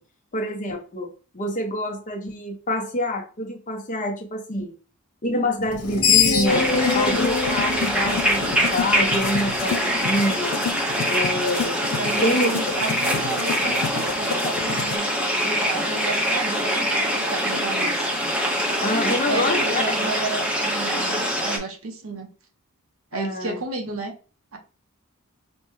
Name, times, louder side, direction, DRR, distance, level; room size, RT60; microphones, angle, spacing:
voice 1, 0.3-4.7 5.2-6.7 6.9-10.6 11.1-11.9 12.2-12.5 18.8-20.1 23.1-23.6, left 1 dB, 35° left, 3 dB, 0.8 m, -26 dB
Screech, 5.7-8.9, left 6 dB, 85° left, 1.0 m, -22 dB
sound 1, 6.1-15.0, left 7 dB, 65° left, 0.3 m, -32 dB
sound 2, 6.5-21.6, equal, 5° right, 0.7 m, -24 dB
voice 2, 12.0-15.1 15.4-18.1 18.9-22.3 23.1-24.1 24.5-24.6, right 3 dB, 70° right, 4 dB, 0.8 m, -32 dB
4.3 x 2.2 x 3.1 m, 0.36 s
head